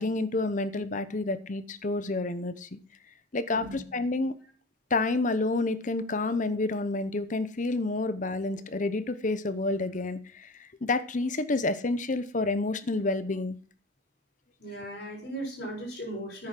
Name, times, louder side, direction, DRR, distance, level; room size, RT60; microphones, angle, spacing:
voice 1, 0.0-2.8 3.3-4.4 4.9-13.6, left 2 dB, 45° left, 14 dB, 0.8 m, -29 dB
voice 2, 3.5-3.8 14.6-16.5, right 1 dB, 65° left, -2 dB, 6.8 m, -37 dB
9.8 x 9.3 x 6.0 m, 0.42 s
head